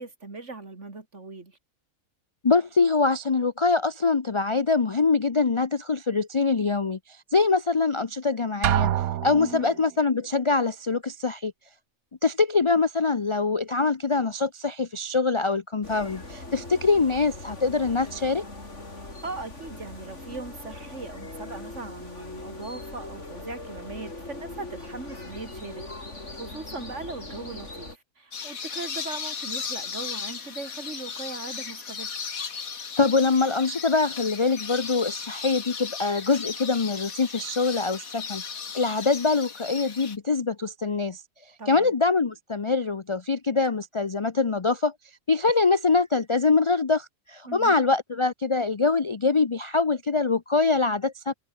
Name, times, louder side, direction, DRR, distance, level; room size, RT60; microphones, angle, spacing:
voice 1, 0.0-1.6 9.3-9.7 19.2-32.2 41.6-41.9 47.4-47.8, right 3 dB, 55° right, 3.4 m, -39 dB
voice 2, 2.4-8.9 9.2-11.5 12.2-18.4 33.0-38.4 38.7-41.2 41.7-44.9 45.3-51.3, left 4 dB, 35° left, 0.5 m, -24 dB
Drum, 8.6-9.8, right 12 dB, 85° right, 1.2 m, -25 dB
sound 1, 15.8-28.0, left 2 dB, 55° left, 5.3 m, -41 dB
sound 2, 28.3-40.2, left 6 dB, 75° left, 2.2 m, -36 dB
omnidirectional pair, 1.5 m